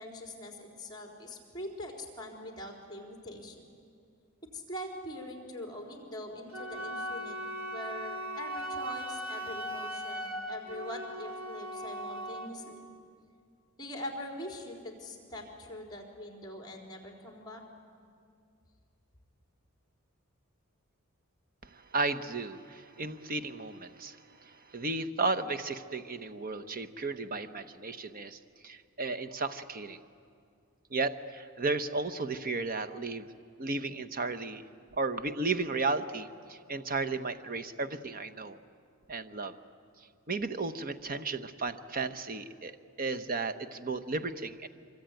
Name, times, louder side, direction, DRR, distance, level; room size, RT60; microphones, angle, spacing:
voice 1, 0.0-3.6 4.5-7.4 7.7-12.7 13.8-17.6, left 1 dB, 20° left, 0 dB, 4.2 m, -43 dB
Wind instrument woodwind instrument, 6.5-12.6, right 1 dB, 65° right, 2.8 m, -38 dB
voice 2, 21.7-30.0 30.9-33.3 33.6-34.6 34.9-38.6 39.1-39.5 40.3-44.7, right 3 dB, 40° right, 10 dB, 1.0 m, -34 dB
24.5 x 24.5 x 9.1 m, 2.3 s
head